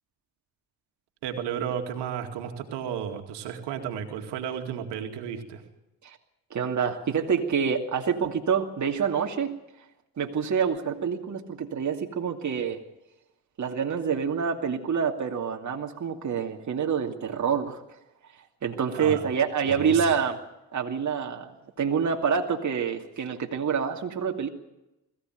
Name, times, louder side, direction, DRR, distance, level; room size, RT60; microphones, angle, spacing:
voice 1, 1.2-5.6 18.9-19.2 19.7-20.1, right 8 dB, 80° right, 5 dB, 2.4 m, -33 dB
voice 2, 6.5-9.5 10.2-12.8 13.6-17.8 18.3-20.4 20.7-21.5 21.8-24.5, right 6 dB, 45° right, 2 dB, 2.5 m, -27 dB
21.5 x 16.0 x 9.3 m, 0.94 s
supercardioid pair, 60°, 41 cm